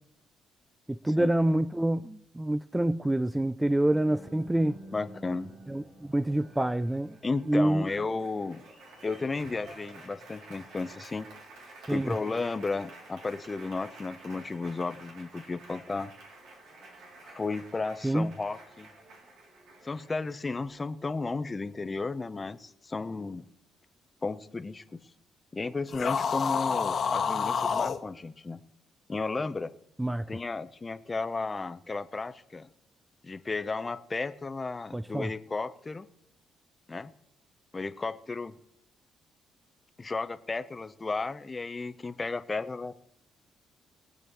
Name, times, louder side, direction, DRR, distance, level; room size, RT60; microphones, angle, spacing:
voice 1, 0.9-4.8 5.7-7.1 7.5-7.9 11.9-12.1 18.0-18.3 30.0-30.2 34.9-35.3, right 1 dB, 10° right, 0.3 m, -27 dB
Applause, 3.7-20.7, right 2 dB, 85° right, 2.8 m, -50 dB
voice 2, 4.9-5.5 7.2-8.6 9.0-11.3 11.9-16.1 17.2-18.9 19.8-23.4 24.2-25.0 25.5-28.6 29.1-29.7 30.3-32.7 33.2-36.1 36.9-37.1 37.7-38.5 40.0-43.0, left 3 dB, 25° left, 0.7 m, -34 dB
sound 1, 25.9-28.0, left 6 dB, 55° left, 1.2 m, -28 dB
22.5 x 8.2 x 3.0 m
cardioid pair, 90°, 0 cm